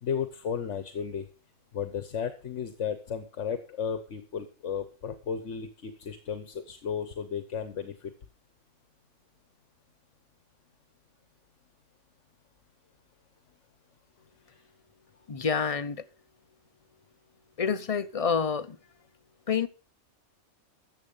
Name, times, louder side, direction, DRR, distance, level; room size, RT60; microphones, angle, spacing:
voice 1, 0.0-1.3 1.7-8.1 14.5-14.6, left 7 dB, 70° left, 1.3 m, -34 dB
voice 2, 15.3-16.1 17.6-18.8 19.5-19.7, left 6 dB, 40° left, 0.6 m, -28 dB
14.0 x 7.9 x 5.5 m
omnidirectional pair, 1.3 m